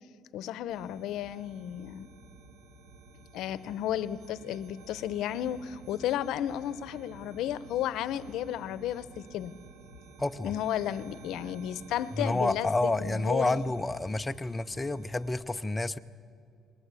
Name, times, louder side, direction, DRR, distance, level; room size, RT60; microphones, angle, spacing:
voice 1, 0.3-2.1 3.3-9.5 10.4-13.6, left 11 dB, 75° left, 17 dB, 0.7 m, -33 dB
sound 1, 0.7-15.4, right 3 dB, 90° right, 2.1 m, -52 dB
voice 2, 10.2-10.5 12.2-16.0, left 2 dB, 15° left, 10 dB, 0.5 m, -29 dB
20.5 x 19.5 x 8.4 m, 2.5 s
cardioid pair, 150°, 0 cm